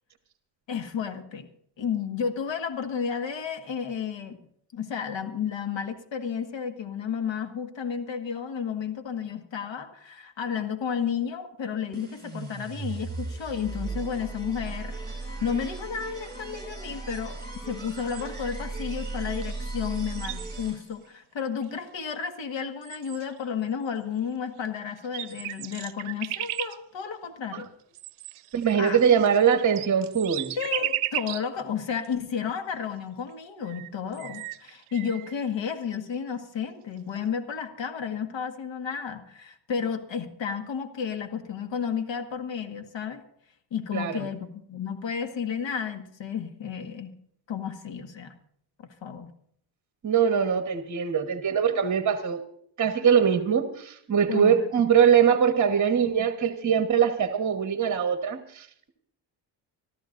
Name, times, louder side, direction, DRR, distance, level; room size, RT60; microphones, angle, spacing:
voice 1, 0.7-1.5 1.8-4.4 4.7-27.7 28.8-29.0 30.6-43.2 43.7-47.2 47.5-48.3 48.8-49.3 54.3-54.6, left 7 dB, 65° left, 7 dB, 1.8 m, -32 dB
sound 1, 11.9-21.1, right 3 dB, 20° right, 7.1 m, -36 dB
sound 2, 18.0-18.5 19.4-19.6 19.8-20.9 21.6-21.7 22.5-22.6 22.8-23.5 24.6-24.7 25.0-26.8 27.9-31.5 32.0-32.1 33.3-33.4 33.6-35.3, right 14 dB, 80° right, 0.7 m, -35 dB
voice 2, 28.5-30.5 43.9-44.2 50.0-52.4 52.8-58.9, right 7 dB, 35° right, 6 dB, 1.3 m, -22 dB
25.5 x 14.0 x 2.6 m, 0.66 s
cardioid pair, 95°, 48 cm